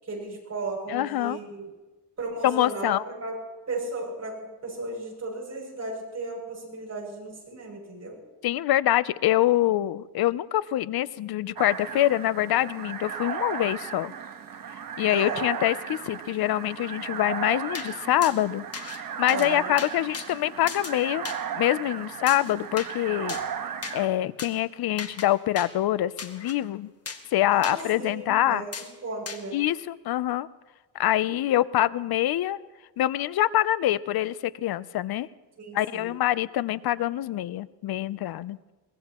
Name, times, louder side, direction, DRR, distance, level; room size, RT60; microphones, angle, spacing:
voice 1, 0.0-1.7 2.2-3.4 3.7-8.2 15.1-15.5 19.3-19.7 27.5-28.7 29.0-29.6 35.6-36.1, right 3 dB, 45° right, -2 dB, 7.1 m, -35 dB
voice 2, 0.9-1.4 2.4-3.0 8.4-14.1 15.0-18.7 19.2-21.2 21.6-23.4 23.9-26.9 27.3-28.6 29.5-30.5 31.0-32.6 33.0-35.3 35.7-38.6, left 13 dB, 70° left, 17 dB, 0.6 m, -25 dB
sound 1, 11.6-24.1, right 7 dB, 60° right, 1.3 m, -35 dB
Training Swords Swordfight, 17.7-17.9 18.2-18.4 18.7-19.0 19.3-19.5 19.8-20.3 20.7-20.9 21.3-21.4 22.3-22.9 23.3-23.5 23.8-24.0 24.4-24.5 25.0-25.3 25.6-25.7 26.2-26.6 27.1-27.3 27.6-27.8 28.7-28.9 29.3-29.4, left 5 dB, 40° left, 1.6 m, -37 dB
23.0 x 19.5 x 3.0 m, 1.2 s
cardioid pair, 115°, 39 cm